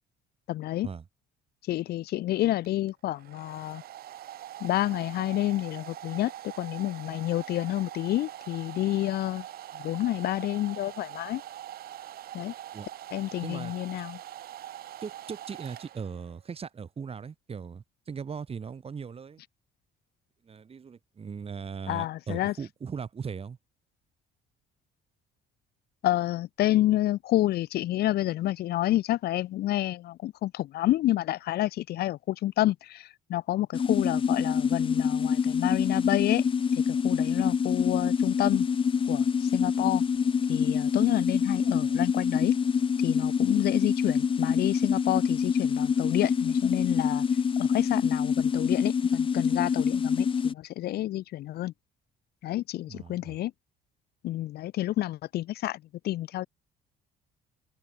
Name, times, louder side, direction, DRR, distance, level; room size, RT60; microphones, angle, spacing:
voice 1, 0.5-0.9 1.7-3.8 4.6-6.3 6.6-9.4 9.7-11.4 12.3-12.5 13.1-14.2 21.9-22.5 26.0-36.5 36.9-38.7 39.0-40.0 40.5-42.5 43.0-47.2 47.6-51.7 52.4-53.5 54.2-56.5, left 14 dB, 70° left, 1.4 m, -29 dB
Domestic sounds home sounds, 2.6-16.4, right 12 dB, 65° right, 4.6 m, -43 dB
voice 2, 13.4-13.7 15.0-19.4 20.4-23.6 52.9-53.4, right 6 dB, 35° right, 6.8 m, -39 dB
sound 1, 33.7-50.5, left 6 dB, 30° left, 0.9 m, -26 dB
open air
cardioid pair, 110°, 17 cm